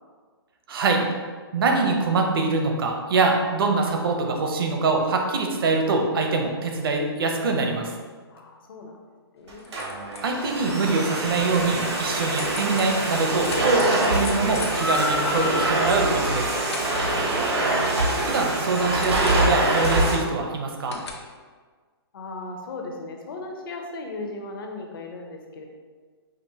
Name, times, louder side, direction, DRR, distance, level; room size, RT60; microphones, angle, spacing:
voice 1, 0.7-1.0 1.5-7.9 10.2-16.5 18.2-21.0, right 3 dB, 60° right, 3 dB, 0.7 m, -24 dB
voice 2, 8.3-9.0 9.3-9.7 16.8-17.6 22.1-25.7, left 2 dB, 55° left, 2 dB, 0.7 m, -37 dB
sound 1, 9.5-10.5 11.4-16.2 16.4-18.0 18.3-19.7 20.9-21.1, left 4 dB, 90° left, 0.7 m, -41 dB
Domestic sounds home sounds, 9.5-20.2, right 2 dB, 85° right, 1.1 m, -25 dB
sound 2, 14.7-18.0, left 1 dB, ahead, 0.3 m, -31 dB
5.1 x 2.6 x 2.8 m, 1.5 s
hypercardioid pair, 150°, 14 cm